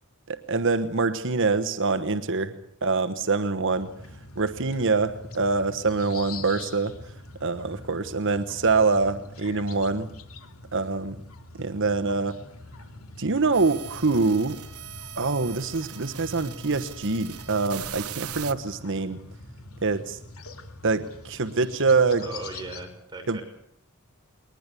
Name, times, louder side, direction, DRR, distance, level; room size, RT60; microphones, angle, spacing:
voice 1, 0.3-2.5 2.8-3.9 4.3-7.1 7.4-10.1 10.7-11.2 11.6-12.4 13.2-14.6 15.2-19.2 19.8-20.2 20.8-22.2 23.3-23.4, right 4 dB, 60° right, 10 dB, 1.2 m, -25 dB
sound 1, 3.7-22.8, left 2 dB, 75° left, 2.7 m, -44 dB
sound 2, 13.5-18.5, right 11 dB, 90° right, 1.2 m, -40 dB
voice 2, 22.2-23.4, right 2 dB, 20° right, 3 dB, 6.3 m, -38 dB
22.0 x 20.0 x 8.4 m, 0.69 s
head